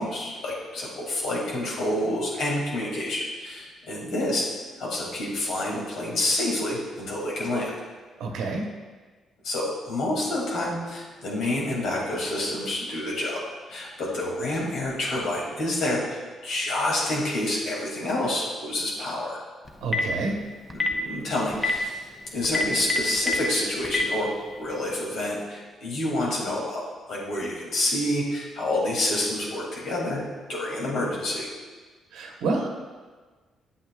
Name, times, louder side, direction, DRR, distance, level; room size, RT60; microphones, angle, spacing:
voice 1, 0.0-4.5 4.8-7.7 9.4-13.4 13.7-19.4 20.7-31.5, left 1 dB, 75° left, -3 dB, 2.4 m, -28 dB
voice 2, 8.2-8.7 19.8-20.4 32.1-32.7, right 3 dB, 85° right, 1 dB, 1.0 m, -28 dB
Telephone, 19.7-20.1 20.7-20.9 21.5-21.7 22.4-23.3 23.8-24.0, left 3 dB, 20° left, 0.8 m, -24 dB
8.7 x 7.9 x 2.4 m, 1.4 s
cardioid pair, 90°, 0 cm